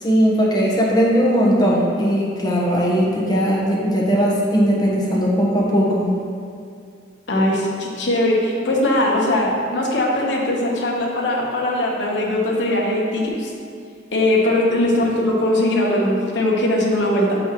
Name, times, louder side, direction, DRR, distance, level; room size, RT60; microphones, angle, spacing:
voice 1, 0.0-6.1, equal, 20° left, -4 dB, 1.0 m, -18 dB
voice 2, 7.3-13.5 14.1-17.4, left 1 dB, 75° left, -2 dB, 1.1 m, -20 dB
7.4 x 5.4 x 3.0 m, 2.3 s
head